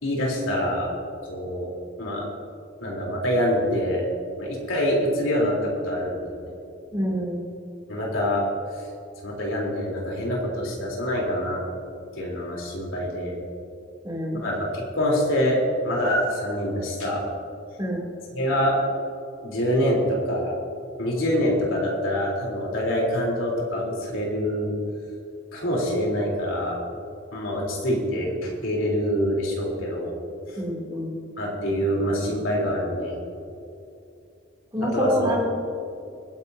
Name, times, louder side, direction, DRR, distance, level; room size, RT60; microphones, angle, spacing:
voice 1, 0.0-0.9 1.2-1.7 2.0-2.3 2.8-4.1 4.4-6.5 7.9-8.4 9.2-11.6 12.2-13.4 14.4-17.2 18.3-18.8 19.4-20.6 21.0-24.8 25.5-26.8 27.3-30.2 30.5-30.6 31.4-33.2 34.8-35.3, equal, 85° left, -3 dB, 3.8 m, -25 dB
voice 2, 6.9-7.4 14.0-14.5 17.8-18.1 30.6-31.1 34.7-35.4, equal, 20° right, -3 dB, 3.0 m, -27 dB
25.0 x 11.0 x 2.8 m, 2.6 s
head